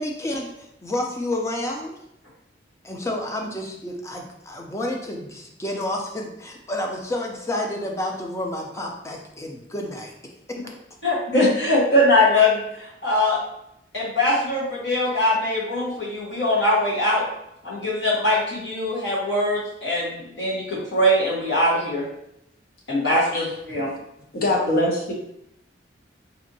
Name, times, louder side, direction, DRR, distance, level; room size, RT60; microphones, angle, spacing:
voice 1, 0.0-1.9 2.8-10.1 10.5-10.6, left 1 dB, 15° left, 1 dB, 0.5 m, -30 dB
voice 2, 11.0-13.4 13.9-17.2 17.6-22.0 22.9-23.9, left 1 dB, 70° left, -5 dB, 1.3 m, -21 dB
voice 3, 24.3-25.1, left 1 dB, 55° left, -1 dB, 0.8 m, -22 dB
4.0 x 2.6 x 2.7 m, 0.80 s
head